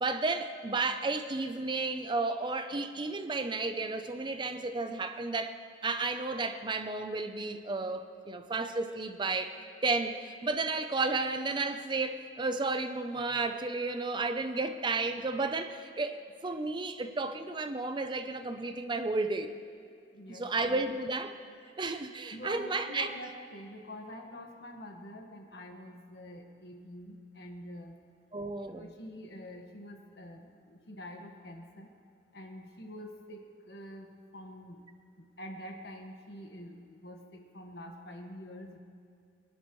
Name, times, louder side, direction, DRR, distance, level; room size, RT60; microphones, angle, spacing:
voice 1, 0.0-9.5 9.8-19.5 20.3-21.3 21.8-23.1 28.3-28.9, right 3 dB, 25° right, 8 dB, 0.6 m, -32 dB
voice 2, 20.1-20.5 20.7-20.9 22.3-28.0 28.7-31.9 32.3-34.1 34.3-34.8 35.2-38.8, equal, 65° left, 2 dB, 1.5 m, -46 dB
22.0 x 11.0 x 3.1 m, 2.4 s
head